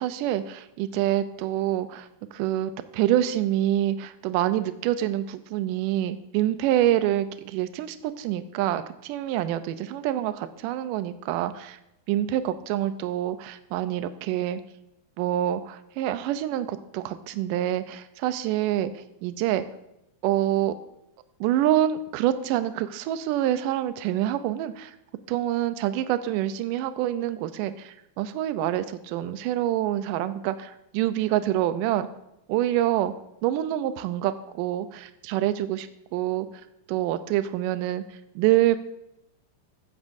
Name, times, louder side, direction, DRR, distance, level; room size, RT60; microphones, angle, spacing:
voice 1, 0.0-2.1 2.3-11.8 12.1-14.6 15.2-19.7 20.2-20.7 21.4-25.0 25.3-32.1 32.5-33.1 33.4-36.5 36.9-38.0 38.4-38.8, right 12 dB, 80° right, 11 dB, 1.9 m, -26 dB
16.0 x 12.5 x 2.7 m, 0.84 s
omnidirectional pair, 4.4 m